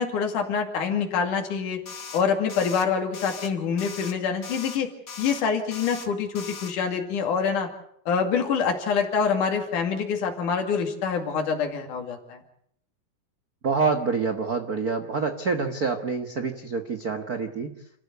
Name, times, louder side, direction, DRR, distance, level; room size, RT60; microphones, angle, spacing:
voice 1, 0.0-1.8 2.1-4.9 5.2-7.7 8.1-12.4, left 6 dB, 65° left, 3 dB, 3.9 m, -26 dB
sound 1, 1.9-2.2 2.5-2.8 3.1-3.5 3.8-4.1 4.4-4.8 5.1-5.4 5.7-6.1 6.4-6.7, left 5 dB, 40° left, 1.7 m, -39 dB
voice 2, 13.6-17.7, right 4 dB, 90° right, 6 dB, 0.8 m, -27 dB
30.0 x 13.5 x 8.2 m, 0.71 s
omnidirectional pair, 4.1 m